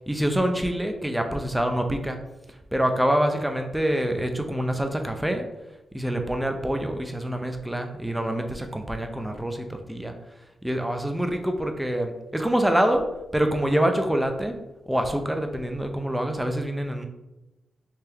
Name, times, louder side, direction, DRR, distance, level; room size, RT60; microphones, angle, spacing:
voice 1, 0.0-2.2 2.7-5.5 5.9-10.1 10.6-13.0 13.3-14.6 14.9-17.1, right 1 dB, 5° right, 5 dB, 0.5 m, -26 dB
3.3 x 2.8 x 3.4 m, 0.99 s
cardioid pair, 75°, 0 cm